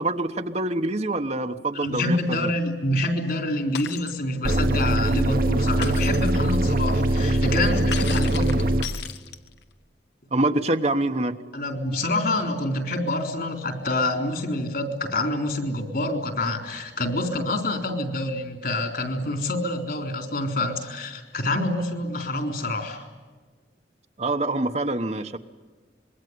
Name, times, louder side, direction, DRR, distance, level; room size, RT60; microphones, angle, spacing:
voice 1, 0.0-2.5 10.3-11.4 24.2-25.4, right 2 dB, 40° right, 7 dB, 1.1 m, -25 dB
voice 2, 1.7-8.8 11.5-23.0, left 1 dB, 55° left, 5 dB, 3.9 m, -27 dB
Shatter, 3.8-4.2 5.8-6.3 7.9-9.6, left 7 dB, 80° left, 1.6 m, -35 dB
sound 1, 4.4-8.8, right 1 dB, 55° right, 1.3 m, -22 dB
26.0 x 22.5 x 9.5 m, 1.4 s
head